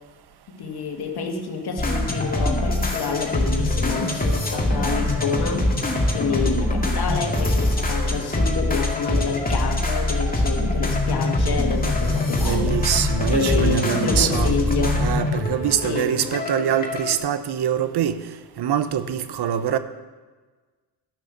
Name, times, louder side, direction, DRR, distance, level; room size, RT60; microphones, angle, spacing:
voice 1, 0.5-5.7 6.1-12.8 13.3-15.0 15.8-16.1, left 5 dB, 60° left, 5 dB, 1.7 m, -28 dB
sound 1, 1.8-17.2, left 1 dB, 20° left, 2.3 m, -23 dB
voice 2, 12.4-18.2 18.6-19.8, right 9 dB, 65° right, 12 dB, 0.9 m, -24 dB
12.0 x 6.3 x 6.8 m, 1.3 s
supercardioid pair, 60°, 43 cm